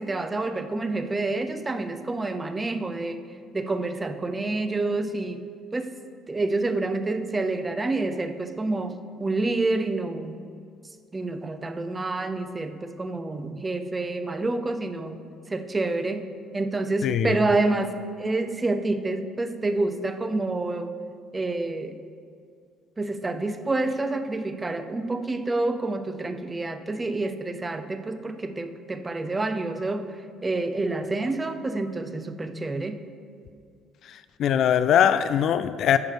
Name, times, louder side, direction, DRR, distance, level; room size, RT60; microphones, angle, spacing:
voice 1, 0.0-3.2 3.5-5.4 5.7-5.9 6.3-10.4 11.1-15.2 15.5-16.3 16.5-20.9 21.3-22.0 23.0-30.1 30.4-33.0, right 2 dB, 15° right, 9 dB, 0.6 m, -28 dB
voice 2, 17.0-17.4 34.4-36.0, left 9 dB, 55° left, 13 dB, 0.3 m, -21 dB
9.6 x 6.3 x 5.0 m, 2.3 s
cardioid pair, 125°, 0 cm